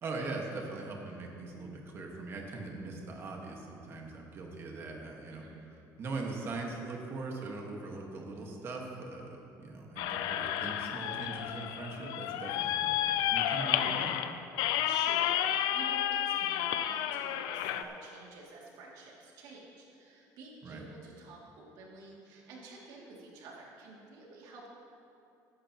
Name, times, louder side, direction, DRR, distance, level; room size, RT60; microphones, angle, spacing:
voice 1, 0.0-5.4 6.0-14.2 20.6-20.8, right 3 dB, 35° right, 0 dB, 1.6 m, -41 dB
voice 2, 5.3-5.7 14.6-24.7, right 3 dB, 70° right, -3 dB, 2.6 m, -50 dB
sound 1, 10.0-17.8, left 11 dB, 80° left, 0.5 m, -31 dB
15.0 x 11.5 x 3.0 m, 2.8 s
cardioid pair, 155°, 7 cm